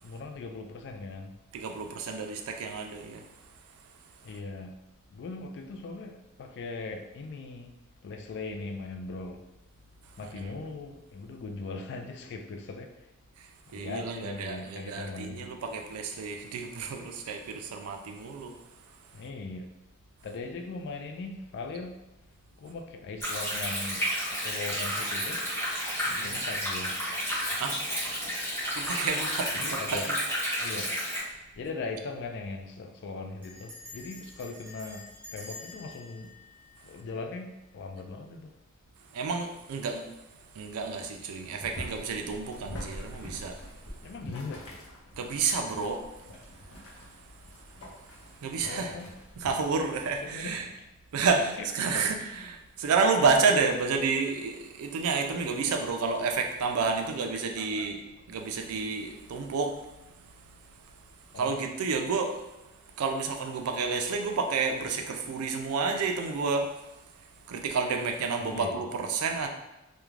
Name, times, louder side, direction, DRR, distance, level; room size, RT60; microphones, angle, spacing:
voice 1, 0.0-1.3 4.2-4.7 5.1-7.7 8.0-9.4 10.2-13.1 13.7-15.5 19.1-19.7 20.2-21.9 22.6-24.0 24.3-25.5 26.1-27.1 27.4-28.2 29.5-30.1 30.6-31.0 31.6-35.1 35.3-36.3 36.8-38.5 44.0-44.7 48.6-49.1 50.2-50.9 51.3-52.1 57.0-57.9 61.3-61.7 68.4-68.8, left 3 dB, 55° left, 4 dB, 0.3 m, -40 dB
voice 2, 1.5-3.2 10.3-10.5 13.7-18.5 26.1-26.3 27.6-27.8 28.8-30.2 39.1-40.1 40.6-43.6 45.2-46.0 48.4-48.9 49.4-50.7 51.1-52.2 52.5-58.0 58.3-59.7 61.4-62.4 63.0-66.7 67.5-69.5, right 4 dB, 85° right, 4 dB, 0.4 m, -30 dB
Stream, 23.2-31.2, equal, 10° left, 1.0 m, -31 dB
Bell, 31.5-31.7 31.9-32.0 32.3-32.6 33.4-37.5, left 2 dB, 10° right, 0.8 m, -48 dB
Boiling, 41.6-49.5, equal, 90° left, 0.6 m, -45 dB
2.4 x 2.2 x 3.1 m, 0.98 s
head